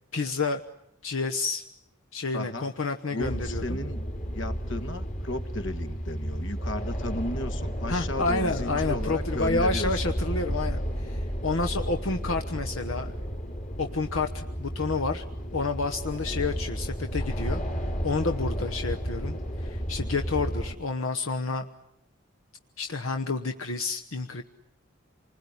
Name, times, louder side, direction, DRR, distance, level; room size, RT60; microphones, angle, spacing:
voice 1, 0.1-0.6 1.0-1.6 2.1-3.8 7.9-13.1 13.8-15.2 15.5-17.6 18.0-21.7 22.8-24.4, left 3 dB, 75° left, 6 dB, 1.1 m, -29 dB
voice 2, 2.3-2.7 3.1-4.1 4.3-10.1, left 1 dB, 60° left, 10 dB, 1.6 m, -34 dB
sound 1, 3.2-20.7, equal, 35° left, 2.8 m, -32 dB
27.5 x 20.5 x 9.8 m, 0.81 s
head